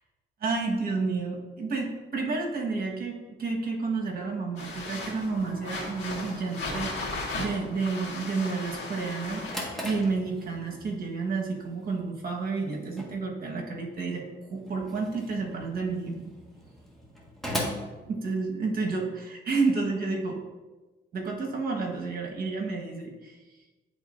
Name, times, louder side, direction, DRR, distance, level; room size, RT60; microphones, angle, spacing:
voice 1, 0.4-16.3 18.1-20.4 21.1-23.4, right 4 dB, 50° right, 0 dB, 1.4 m, -30 dB
sound 1, 4.6-9.9, left 2 dB, 70° left, 2.0 m, -36 dB
Drawer open or close, 9.4-18.9, equal, ahead, 1.5 m, -40 dB
10.5 x 3.7 x 2.5 m, 1.2 s
cardioid pair, 90°, 20 cm